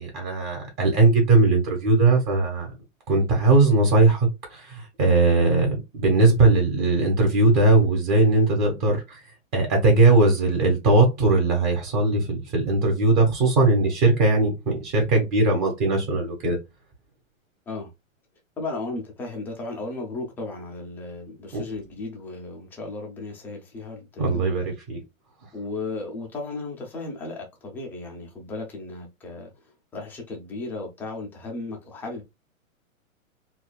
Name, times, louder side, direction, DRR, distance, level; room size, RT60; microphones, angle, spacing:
voice 1, 0.0-2.7 3.1-9.2 9.5-16.6 21.5-21.6 24.2-25.0, right 2 dB, 35° right, 1.2 m, -20 dB
voice 2, 18.6-24.4 25.5-29.5 29.9-32.2, left 3 dB, 5° left, 0.4 m, -35 dB
4.0 x 2.3 x 2.2 m
hypercardioid pair, 130°, 41 cm